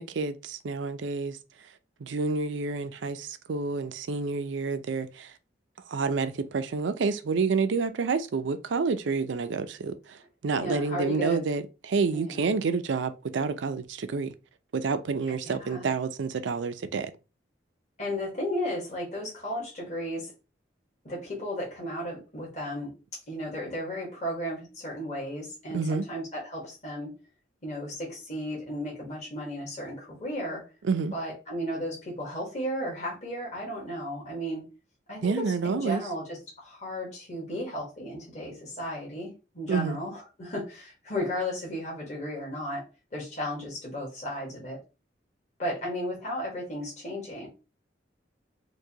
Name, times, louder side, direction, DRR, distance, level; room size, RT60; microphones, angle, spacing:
voice 1, 0.0-1.4 2.0-5.3 5.9-10.2 10.4-14.3 14.7-17.1 25.7-26.1 30.8-31.1 35.2-36.0 39.7-40.0, right 4 dB, 75° right, 0.4 m, -29 dB
voice 2, 10.5-11.4 12.1-12.4 15.3-15.9 18.0-20.3 21.0-22.9 23.3-27.1 27.6-30.6 31.1-34.7 35.1-42.8 43.1-44.8 45.6-47.5, equal, 40° left, 1.3 m, -34 dB
4.6 x 2.2 x 2.8 m
head